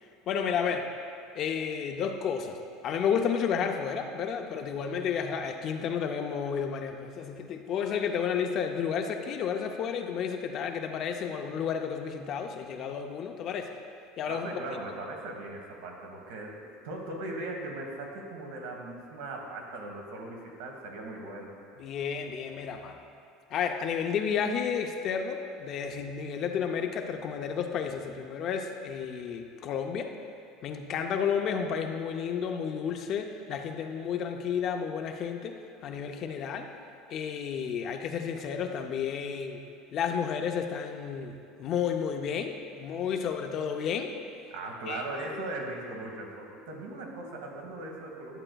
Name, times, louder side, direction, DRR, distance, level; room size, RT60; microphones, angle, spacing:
voice 1, 0.3-0.9 1.4-13.7 14.2-14.5 21.8-23.0 23.5-30.1 30.6-36.7 37.1-39.6 39.9-44.1 44.9-45.5, left 7 dB, 40° left, 5 dB, 0.5 m, -32 dB
voice 2, 14.3-21.6 44.5-48.4, right 2 dB, 90° right, 1 dB, 1.3 m, -39 dB
11.0 x 7.6 x 2.3 m, 2.5 s
cardioid pair, 160°, 0 cm